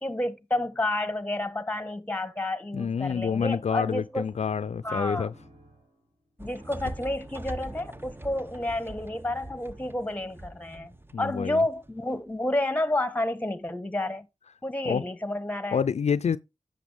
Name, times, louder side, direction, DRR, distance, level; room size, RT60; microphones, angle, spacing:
voice 1, 0.0-4.3 4.8-5.3 6.4-14.3 14.6-15.8, left 1 dB, 10° left, 1.3 m, -30 dB
voice 2, 2.7-5.3 11.1-11.6 14.9-15.0 15.7-16.4, left 6 dB, 65° left, 0.4 m, -27 dB
sound 1, 3.1-9.6, equal, 50° right, 4.9 m, -57 dB
sound 2, 6.4-12.4, right 1 dB, 20° right, 0.8 m, -43 dB
10.0 x 6.7 x 3.5 m
cardioid pair, 40°, 12 cm